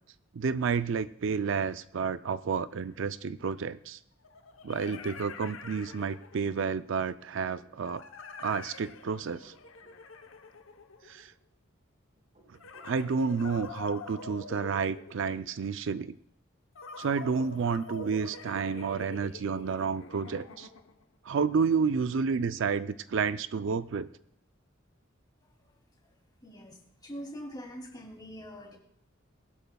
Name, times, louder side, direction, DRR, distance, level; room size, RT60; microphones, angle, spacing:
voice 1, 0.3-4.0 4.6-8.0 8.4-9.5 11.1-11.3 12.8-16.2 17.0-20.7 21.3-24.1, right 5 dB, 65° right, 13 dB, 0.4 m, -30 dB
sound 1, 2.8-2.9 4.2-6.6 7.9-11.3 12.5-15.6 16.8-21.0, left 4 dB, 80° left, 0.9 m, -46 dB
sound 2, 6.8-7.8 9.2-10.0 12.1-13.0, right 2 dB, 35° right, 4.7 m, -60 dB
voice 2, 26.4-28.8, equal, 20° left, 0 dB, 2.8 m, -43 dB
20.5 x 12.0 x 2.3 m, 0.71 s
head